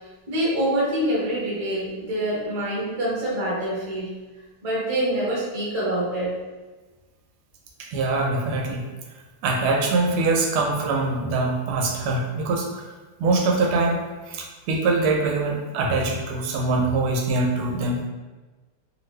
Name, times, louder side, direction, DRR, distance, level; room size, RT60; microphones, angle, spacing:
voice 1, 0.3-4.1 4.6-6.4, right 1 dB, 25° right, -7 dB, 0.7 m, -25 dB
voice 2, 7.8-8.8 9.4-12.7 13.2-18.1, right 3 dB, 80° right, 0 dB, 1.4 m, -23 dB
3.3 x 2.4 x 3.1 m, 1.3 s
omnidirectional pair, 2.3 m